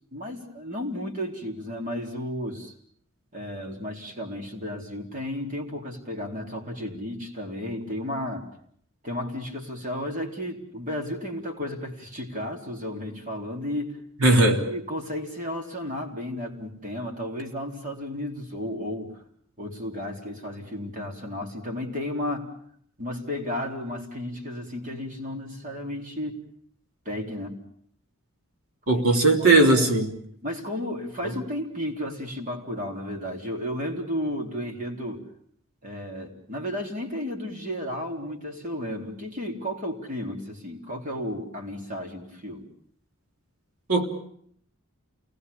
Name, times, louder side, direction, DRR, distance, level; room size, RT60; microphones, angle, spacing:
voice 1, 0.1-2.7 3.3-8.4 9.0-14.0 14.2-14.4 14.7-19.1 19.6-22.5 23.0-26.4 27.1-27.6 28.9-29.0 29.4-29.9 30.4-35.2 35.8-42.6, left 1 dB, 35° right, 4.0 m, -33 dB
voice 2, 14.2-14.6 28.9-30.1 31.2-31.3 43.9-44.1, right 2 dB, 75° right, 3.4 m, -18 dB
28.5 x 19.5 x 7.0 m
head